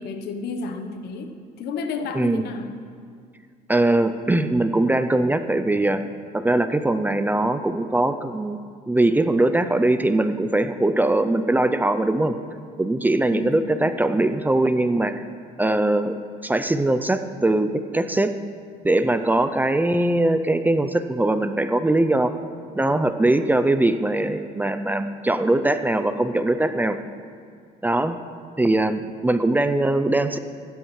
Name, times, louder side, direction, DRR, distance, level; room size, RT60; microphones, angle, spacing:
voice 1, 0.0-1.3 1.6-2.7 13.3-13.9, left 4 dB, 75° left, 7 dB, 1.0 m, -31 dB
voice 2, 3.7-6.0 6.3-8.6 8.9-12.3 12.8-15.2 15.6-16.2 16.4-18.3 18.8-22.3 22.7-27.0 27.8-28.2 28.6-30.4, right 2 dB, 10° right, 10 dB, 0.4 m, -21 dB
16.0 x 11.5 x 3.2 m, 2.2 s
cardioid pair, 110°, 17 cm